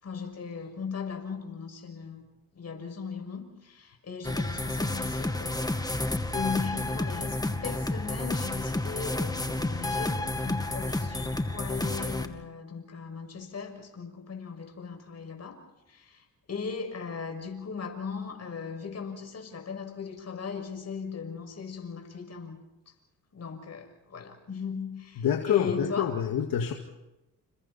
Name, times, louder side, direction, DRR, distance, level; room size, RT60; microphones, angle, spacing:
voice 1, 0.0-2.3 2.5-6.0 6.3-15.6 15.9-22.6 23.3-26.2, left 5 dB, 45° left, 4 dB, 6.4 m, -38 dB
sound 1, 4.2-12.3, left 2 dB, 10° left, 2.1 m, -30 dB
voice 2, 25.2-26.7, left 9 dB, 75° left, 3 dB, 2.2 m, -27 dB
29.5 x 29.5 x 4.3 m, 0.98 s
cardioid pair, 75°, 36 cm